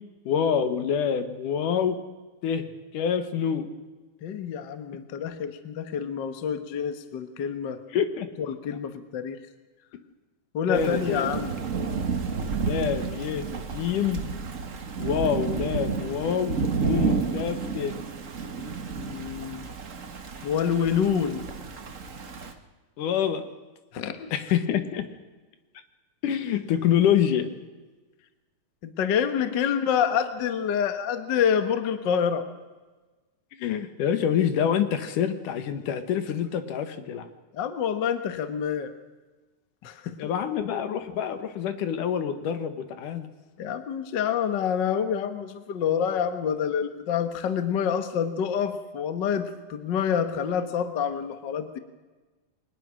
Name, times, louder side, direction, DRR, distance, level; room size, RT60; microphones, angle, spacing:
voice 1, 0.3-2.0 2.4-2.7 2.9-3.7 7.9-8.3 10.7-11.3 12.7-14.2 15.0-17.9 23.0-23.5 24.3-25.1 26.2-27.5 33.6-37.3 40.2-43.3, left 8 dB, 75° left, 10 dB, 2.9 m, -26 dB
voice 2, 4.2-7.8 8.4-9.4 10.5-11.5 19.0-19.7 20.4-21.4 23.9-24.2 28.8-32.4 37.5-38.9 39.8-40.3 43.6-51.8, left 8 dB, 50° left, 10 dB, 1.4 m, -27 dB
Thunder / Rain, 10.7-22.5, right 4 dB, 60° right, 0.8 m, -31 dB
22.5 x 20.0 x 6.3 m, 1.3 s
omnidirectional pair, 3.7 m